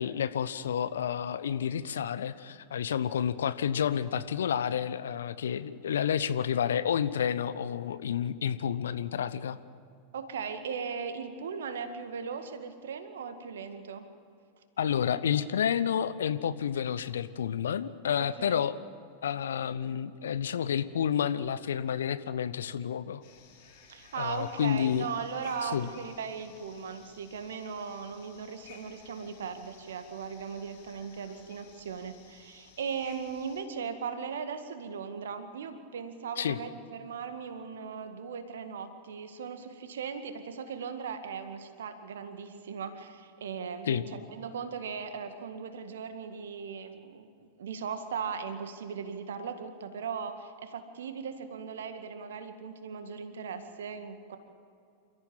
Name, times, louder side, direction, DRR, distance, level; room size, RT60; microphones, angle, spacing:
voice 1, 0.0-9.6 14.8-18.8 19.2-23.2 24.2-25.1 25.6-25.9 36.4-36.6 43.9-44.1, left 8 dB, 65° left, 14 dB, 0.9 m, -30 dB
voice 2, 10.1-14.1 18.2-18.6 23.9-47.3 47.6-54.4, right 6 dB, 65° right, 8 dB, 1.9 m, -38 dB
sound 1, 23.2-33.6, left 6 dB, 50° left, 4.2 m, -57 dB
28.5 x 14.5 x 7.6 m, 2.4 s
figure-of-eight pair, 90°, 0 cm